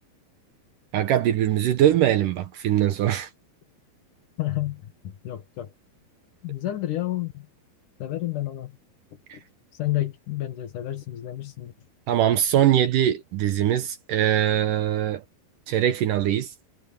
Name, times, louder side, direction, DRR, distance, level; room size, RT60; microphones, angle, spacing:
voice 1, 0.9-3.3 9.3-9.4 12.1-15.2 15.7-16.5, right 11 dB, 70° right, 2.2 m, -22 dB
voice 2, 4.4-4.9 5.2-5.7 6.4-7.5 8.0-8.7 9.8-11.7, left 15 dB, 60° left, 2.8 m, -30 dB
omnidirectional pair, 4.5 m